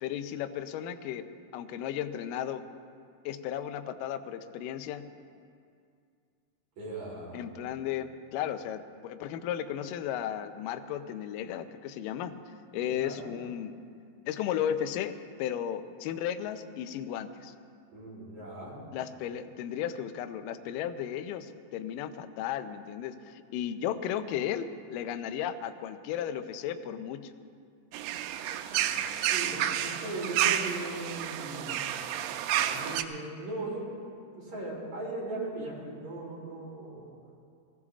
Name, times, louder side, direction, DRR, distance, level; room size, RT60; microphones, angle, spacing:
voice 1, 0.0-2.6 3.3-5.1 7.3-12.3 12.7-13.7 14.3-17.5 18.9-27.2, left 10 dB, 85° left, 8 dB, 1.9 m, -35 dB
voice 2, 6.8-7.6 12.7-13.2 17.9-18.8 28.9-31.8 32.5-34.0 34.3-37.1, right 2 dB, 45° right, -5 dB, 5.5 m, -38 dB
sound 1, 27.9-33.0, right 11 dB, 80° right, 2.5 m, -30 dB
21.5 x 15.5 x 3.7 m, 2.3 s
omnidirectional pair, 4.8 m